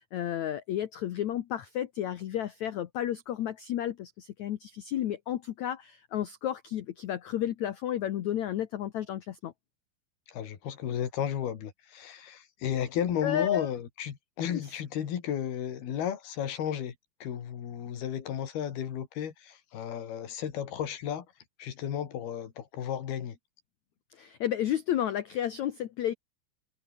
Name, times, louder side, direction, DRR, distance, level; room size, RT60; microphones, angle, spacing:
voice 1, 0.1-9.5 13.2-13.7 14.5-14.6 24.1-26.1, left 11 dB, 85° left, 1.6 m, -32 dB
voice 2, 10.3-17.0 17.2-21.3 21.6-23.4, left 9 dB, 65° left, 4.4 m, -33 dB
omnidirectional pair, 4.9 m